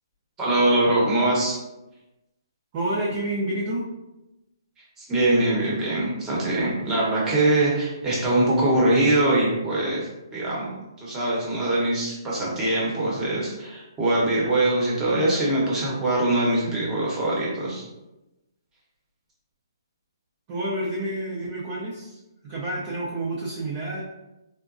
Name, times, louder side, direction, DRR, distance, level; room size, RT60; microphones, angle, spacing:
voice 1, 0.4-1.6 5.0-17.8, right 1 dB, 15° right, -5 dB, 0.9 m, -23 dB
voice 2, 2.7-3.8 20.5-22.2 22.4-24.0, right 1 dB, 30° right, -6 dB, 0.5 m, -29 dB
3.8 x 2.1 x 2.5 m, 0.97 s
hypercardioid pair, 150°, 2 cm